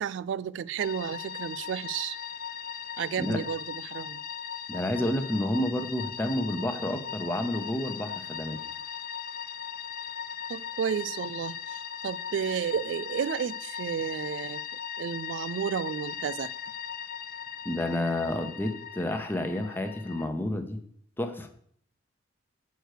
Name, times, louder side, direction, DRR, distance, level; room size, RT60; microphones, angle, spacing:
voice 1, 0.0-2.2 3.0-4.2 10.5-14.6 15.0-16.5, right 8 dB, 70° right, 0.3 m, -32 dB
sound 1, 0.8-20.3, left 8 dB, 50° left, 0.5 m, -39 dB
voice 2, 4.7-8.6 17.6-20.8 21.2-21.5, left 1 dB, 10° left, 0.8 m, -30 dB
7.9 x 4.7 x 6.6 m
head